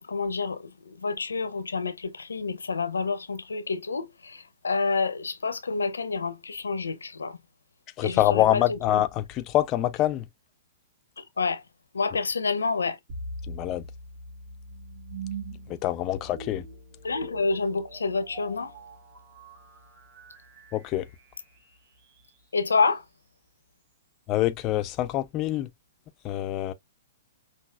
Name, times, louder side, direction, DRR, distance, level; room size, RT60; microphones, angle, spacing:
voice 1, 0.1-7.4 8.0-9.0 11.2-11.6 11.9-13.0 17.0-18.7 22.5-23.0, left 4 dB, 85° left, 0.8 m, -28 dB
voice 2, 8.0-10.3 13.5-13.8 15.7-16.6 20.7-21.1 24.3-25.7 26.2-26.7, left 14 dB, 35° left, 0.6 m, -25 dB
sound 1, 13.1-22.2, right 2 dB, 55° right, 3.0 m, -42 dB
5.9 x 2.7 x 2.5 m
hypercardioid pair, 120°, 0 cm